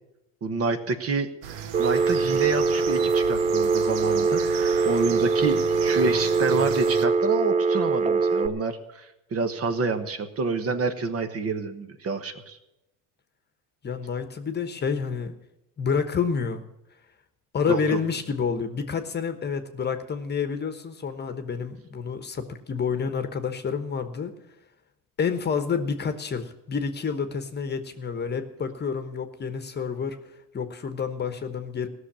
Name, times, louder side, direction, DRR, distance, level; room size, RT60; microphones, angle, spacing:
voice 1, 0.4-1.3 1.8-9.1 9.3-12.6 17.7-18.0, right 4 dB, 40° right, 8 dB, 1.2 m, -28 dB
sound 1, 1.4-7.1, right 8 dB, 85° right, 1.1 m, -36 dB
Telephone, 1.7-8.5, right 4 dB, 20° right, 0.6 m, -23 dB
voice 2, 13.8-15.3 15.8-16.6 17.5-24.3 25.2-30.2 30.5-31.9, left 6 dB, 25° left, 9 dB, 1.2 m, -29 dB
16.0 x 6.6 x 8.8 m, 0.90 s
supercardioid pair, 110°, 37 cm